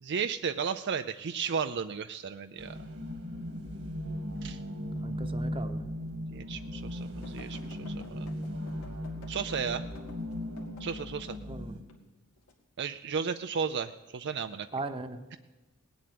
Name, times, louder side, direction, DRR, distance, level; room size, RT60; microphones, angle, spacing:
voice 1, 0.0-2.8 4.4-4.6 6.3-8.3 9.3-9.8 10.8-11.4 12.8-14.7, right 6 dB, 55° right, 9 dB, 0.5 m, -34 dB
sound 1, 2.6-11.8, equal, 70° right, 1.9 m, -37 dB
voice 2, 4.9-5.8 11.4-11.8 14.7-15.4, right 2 dB, 25° right, 8 dB, 1.0 m, -38 dB
sound 2, 5.7-5.8 6.3-6.4 7.2-11.4 11.9-12.5 13.2-13.5, left 3 dB, 90° left, 2.1 m, -52 dB
19.0 x 7.8 x 9.4 m, 1.1 s
head